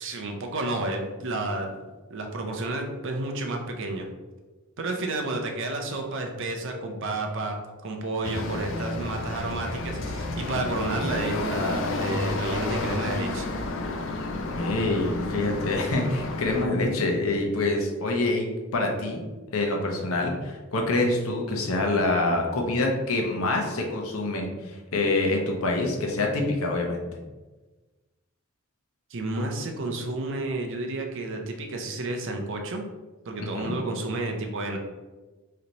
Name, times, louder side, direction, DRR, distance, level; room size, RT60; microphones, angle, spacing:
voice 1, 0.0-1.8 2.1-4.1 4.8-7.6 7.8-13.5 29.1-32.8 33.2-34.8, right 2 dB, 65° right, 3 dB, 0.6 m, -31 dB
sound 1, 8.2-16.7, left 2 dB, 65° left, 0.4 m, -31 dB
voice 2, 14.5-19.2 19.5-27.2 33.4-33.7, left 2 dB, 90° left, 1 dB, 0.8 m, -26 dB
3.3 x 2.8 x 3.9 m, 1.2 s
head